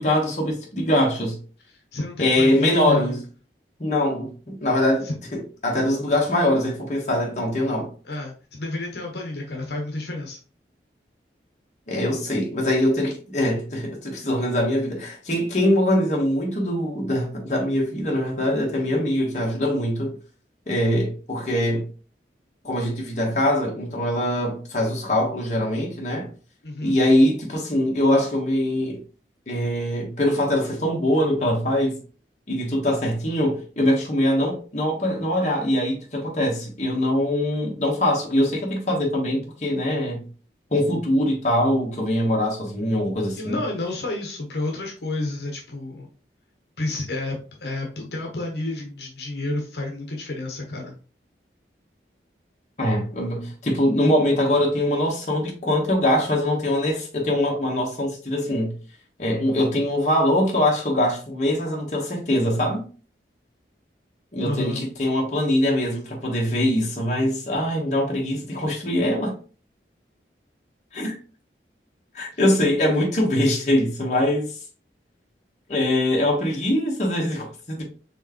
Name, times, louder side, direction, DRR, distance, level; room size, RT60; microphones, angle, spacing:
voice 1, 0.0-1.4 2.2-3.2 3.8-5.1 5.6-7.9 11.9-20.2 20.7-21.9 22.6-26.3 26.8-29.0 29.5-32.0 32.5-40.2 40.7-43.6 52.8-58.7 59.2-62.8 64.3-69.3 70.9-71.1 72.1-74.5 75.7-77.8, left 1 dB, 40° left, 1.2 m, -23 dB
voice 2, 1.9-3.2 5.0-5.1 8.0-10.4 26.6-27.0 43.3-46.1 46.8-51.0 64.4-64.8 72.3-72.4, left 2 dB, 70° left, 0.9 m, -30 dB
4.6 x 3.3 x 3.0 m
head